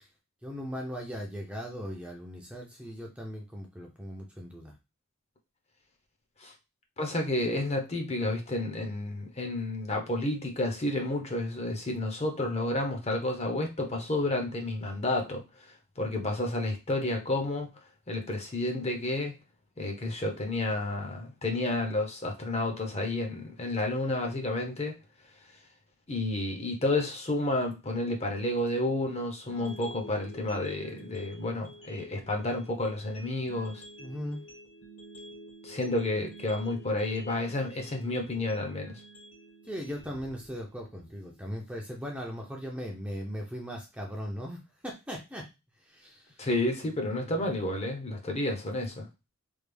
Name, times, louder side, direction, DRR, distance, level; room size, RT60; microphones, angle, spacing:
voice 1, 0.4-4.7 34.0-34.4 39.7-45.5 45.8-46.4 47.0-47.3, equal, 5° right, 0.5 m, -38 dB
voice 2, 7.0-15.4 16.0-17.7 18.1-19.3 19.8-24.9 26.1-33.8 35.6-39.0 46.4-49.1, left 2 dB, 30° left, 0.7 m, -30 dB
sound 1, 29.5-41.5, right 1 dB, 65° left, 1.3 m, -49 dB
3.4 x 2.3 x 3.3 m
head